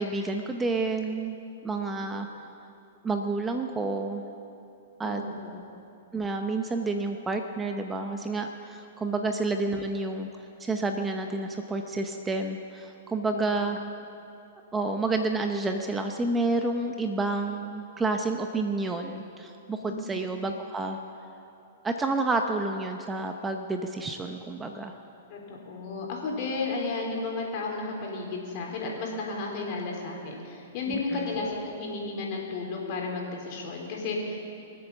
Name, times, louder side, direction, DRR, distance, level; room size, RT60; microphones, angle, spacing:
voice 1, 0.0-1.4 1.6-2.3 3.0-4.2 5.0-5.2 6.1-13.8 14.7-21.0 21.8-25.0 30.9-31.4, right 3 dB, 15° right, 5 dB, 0.7 m, -29 dB
voice 2, 5.0-5.5 13.3-13.4 19.8-20.0 25.3-34.4, left 3 dB, 45° left, -1 dB, 3.7 m, -33 dB
23.0 x 8.0 x 7.1 m, 2.8 s
hypercardioid pair, 135°, 0 cm